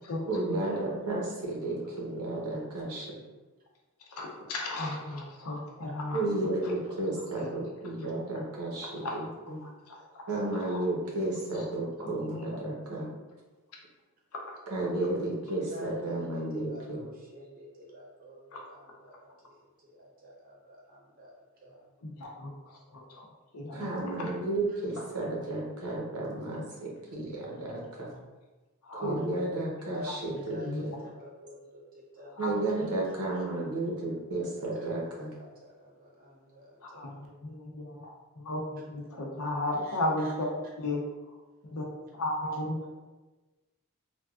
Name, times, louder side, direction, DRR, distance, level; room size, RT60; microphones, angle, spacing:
voice 1, 0.3-3.1 6.1-9.6 10.3-13.1 14.7-17.0 23.7-28.1 28.9-31.0 32.4-35.3, right 2 dB, 85° right, -3 dB, 0.8 m, -33 dB
voice 2, 4.1-6.2 7.4-7.5 9.0-9.1 9.9-10.2 10.6-10.8 12.0-12.1 18.5-18.6 22.0-24.3 28.8-29.5 30.1-30.8 32.4-32.5 36.8-41.3 41.7-42.9, left 1 dB, 85° left, 0 dB, 0.6 m, -35 dB
voice 3, 15.7-21.3 21.6-21.8 24.7-24.8 29.8-32.4 32.8-32.9 34.4-34.5 35.2-37.3 39.8-40.3, left 1 dB, 40° right, -4 dB, 0.7 m, -48 dB
3.4 x 2.2 x 2.3 m, 1.2 s
head